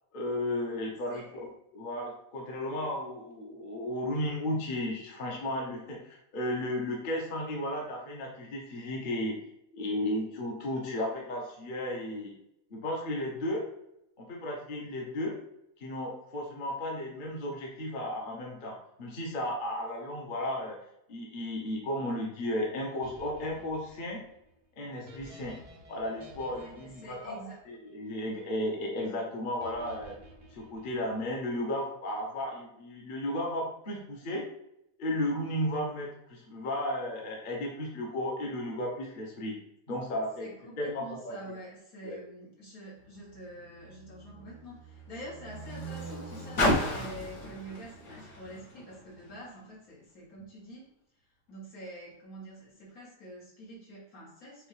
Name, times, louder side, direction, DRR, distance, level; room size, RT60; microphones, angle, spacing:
voice 1, 0.1-1.2 1.7-9.4 9.7-12.3 12.7-13.6 14.2-15.3 15.8-20.8 21.1-24.2 24.8-25.6 25.9-27.4 27.7-30.1 30.5-34.4 35.0-39.5 39.9-40.5 40.8-41.4 42.0-42.2, left 1 dB, 40° left, -1 dB, 0.9 m, -34 dB
sound 1, 23.0-28.3 29.6-31.5, right 1 dB, 50° right, 0.4 m, -53 dB
voice 2, 26.6-27.6 40.4-50.9 51.5-54.7, right 1 dB, 75° left, -4 dB, 2.0 m, -46 dB
Car, 43.0-49.6 50.4-50.5, left 1 dB, 55° left, 1.5 m, -35 dB
6.2 x 2.4 x 3.2 m, 0.81 s
omnidirectional pair, 1.5 m